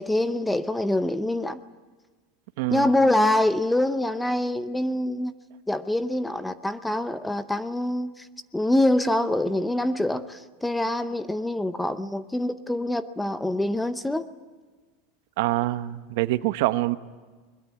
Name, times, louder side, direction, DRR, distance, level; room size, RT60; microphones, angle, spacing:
voice 1, 0.0-1.6 2.7-5.3 5.7-8.3 8.5-14.3, left 1 dB, 5° left, 0.7 m, -25 dB
voice 2, 15.4-17.0, right 17 dB, 60° right, 0.9 m, -25 dB
22.0 x 21.5 x 9.2 m
supercardioid pair, 165°, 0 cm